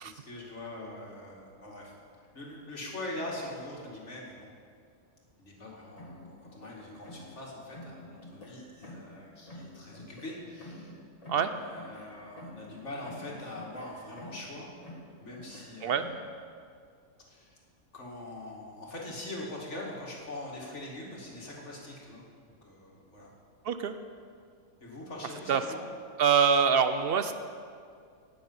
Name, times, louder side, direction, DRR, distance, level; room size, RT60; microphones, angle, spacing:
voice 1, 0.0-1.9 2.3-4.5 5.4-10.9 11.4-14.7 15.2-16.1 17.3-17.6 17.9-23.3 24.8-25.8, left 1 dB, 55° left, -3 dB, 2.4 m, -43 dB
sound 1, 5.9-7.4 7.7-9.2 9.5-12.8 13.0-14.6 14.8-16.3, left 1 dB, 25° left, 1.9 m, -48 dB
voice 2, 23.6-23.9 25.5-25.6 26.2-27.3, right 7 dB, 60° right, 10 dB, 0.6 m, -24 dB
18.0 x 7.1 x 5.5 m, 2.2 s
omnidirectional pair, 1.5 m